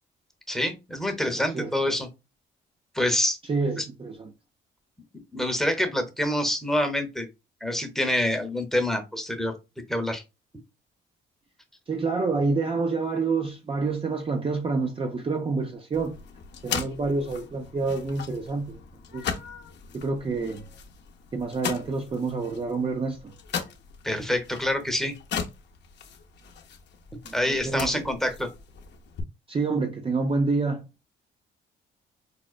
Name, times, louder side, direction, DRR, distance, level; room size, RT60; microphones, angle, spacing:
voice 1, 0.5-2.1 2.9-3.4 3.8-3.9 5.3-7.3 7.6-9.5 9.9-10.2 24.0-25.1 27.3-28.5, left 1 dB, ahead, 0.8 m, -26 dB
voice 2, 1.3-1.7 3.5-4.3 11.9-16.2 16.6-18.8 19.1-19.3 19.9-20.6 21.3-23.2 27.2-28.1 29.5-30.9, right 4 dB, 25° right, 0.5 m, -28 dB
sound 1, 15.9-29.2, left 7 dB, 60° left, 0.7 m, -38 dB
4.8 x 2.1 x 2.4 m
cardioid pair, 90°, 20 cm